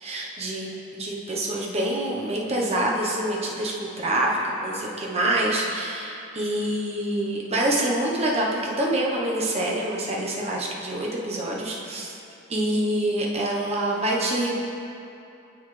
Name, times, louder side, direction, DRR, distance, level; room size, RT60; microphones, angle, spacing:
voice 1, 0.0-12.1 12.5-14.6, right 1 dB, 30° right, -3 dB, 1.0 m, -26 dB
9.4 x 7.1 x 3.3 m, 2.7 s
head